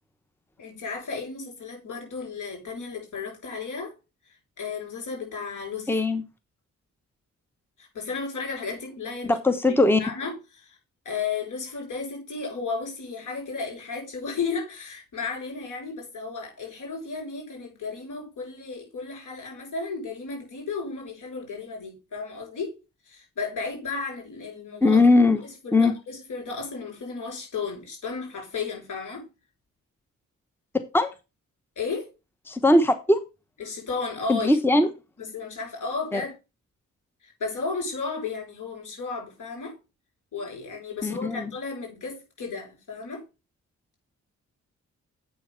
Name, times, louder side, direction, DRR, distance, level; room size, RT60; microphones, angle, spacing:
voice 1, 0.6-3.9 4.6-6.0 7.8-9.4 9.7-10.8 11.1-22.8 23.1-25.0 25.4-29.3 31.8-32.1 33.6-34.6 35.2-36.3 37.2-39.8 40.3-43.2, left 4 dB, 85° left, 6.9 m, -34 dB
voice 2, 5.9-6.2 9.2-10.0 24.8-25.4 25.7-25.9 30.9-31.1 32.5-33.2 34.3-34.9 36.1-36.2 41.0-41.5, left 2 dB, 5° left, 1.0 m, -20 dB
8.0 x 6.3 x 5.7 m
wide cardioid pair, 125°, 30 cm